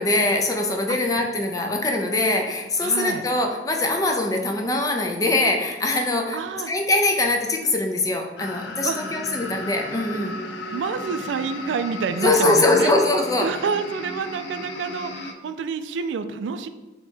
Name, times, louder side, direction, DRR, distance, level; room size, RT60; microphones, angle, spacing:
voice 1, 0.0-6.4 6.7-10.3 12.2-13.5, left 2 dB, 20° left, 2 dB, 0.4 m, -22 dB
voice 2, 2.8-3.2 6.3-6.7 8.8-9.0 10.7-13.0 13.4-16.7, right 5 dB, 85° right, 10 dB, 0.3 m, -28 dB
sound 1, 8.4-15.3, left 2 dB, 75° left, 0.5 m, -35 dB
3.3 x 2.8 x 4.4 m, 1.2 s
head